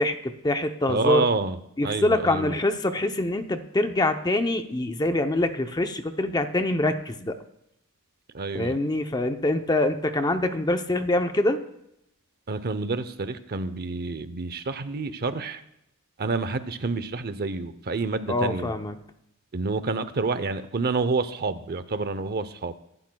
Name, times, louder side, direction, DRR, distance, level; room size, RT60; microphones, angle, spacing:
voice 1, 0.0-1.2 1.8-7.4 8.5-11.6 18.3-18.9, left 1 dB, 20° left, 7 dB, 0.7 m, -25 dB
voice 2, 0.9-1.6 1.8-2.5 8.3-8.7 12.5-15.6 16.2-18.7 19.5-22.7, right 3 dB, 45° right, 12 dB, 0.7 m, -28 dB
24.0 x 12.0 x 2.3 m, 0.81 s
head